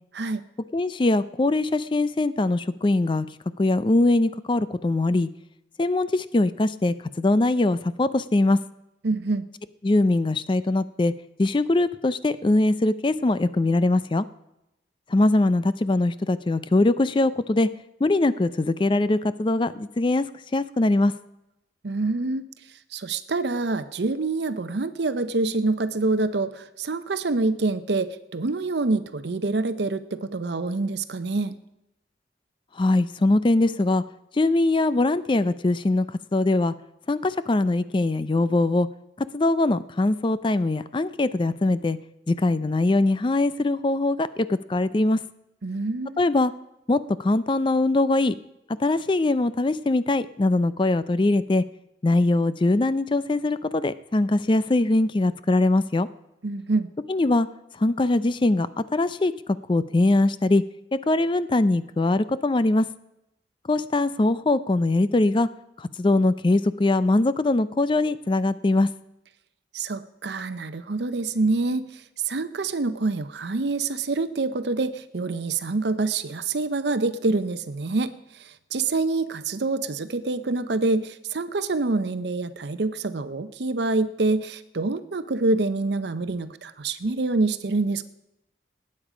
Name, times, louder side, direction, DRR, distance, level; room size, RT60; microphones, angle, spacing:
voice 1, 0.7-3.3 3.6-5.3 5.8-8.6 9.8-11.1 11.4-14.3 15.1-17.7 18.0-20.3 20.5-21.1 32.8-34.0 34.3-36.7 37.1-38.9 39.3-42.0 42.3-45.2 46.2-46.5 46.9-48.4 48.8-51.6 52.0-56.1 57.1-57.5 57.8-59.3 59.7-60.6 61.1-62.9 63.7-65.5 65.8-68.9, left 2 dB, 25° left, 15 dB, 0.4 m, -22 dB
voice 2, 9.0-9.4 21.8-22.4 22.9-31.5 45.6-46.2 56.4-56.9 69.7-88.0, right 3 dB, 70° right, 12 dB, 0.7 m, -26 dB
19.5 x 8.7 x 5.0 m, 0.89 s
head